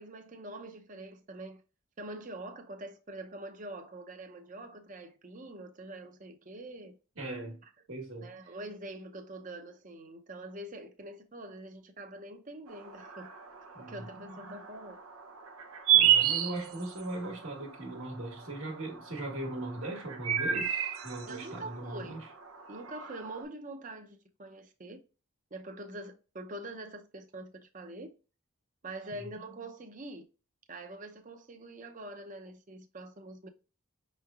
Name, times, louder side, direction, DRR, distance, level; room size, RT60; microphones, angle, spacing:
voice 1, 0.0-1.6 2.0-7.0 8.2-13.3 13.9-15.0 21.3-22.1 22.7-25.0 25.5-28.1 28.8-30.2 30.7-33.5, right 1 dB, 35° right, 0.6 m, -44 dB
voice 2, 7.2-7.6 7.9-8.5 13.7-14.1 15.9-22.3 29.1-29.2, right 2 dB, 65° right, 1.3 m, -39 dB
sound 1, 12.7-23.4, right 10 dB, 90° right, 0.7 m, -32 dB
5.5 x 3.2 x 2.4 m
head